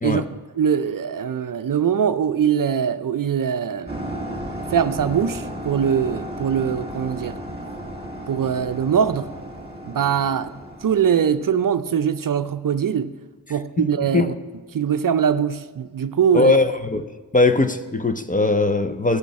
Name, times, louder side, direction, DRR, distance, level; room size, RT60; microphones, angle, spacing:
voice 1, 0.0-4.3 4.7-7.4 8.3-9.3 9.8-10.5 10.8-13.1 13.5-14.3 14.7-16.5, right 8 dB, 50° right, 11 dB, 0.6 m, -22 dB
sound 1, 3.9-11.5, equal, 15° right, 2.4 m, -34 dB
voice 2, 16.3-17.0 17.3-19.2, left 3 dB, 20° left, 10 dB, 0.6 m, -19 dB
12.0 x 8.5 x 4.8 m, 1.3 s
cardioid pair, 40°, 43 cm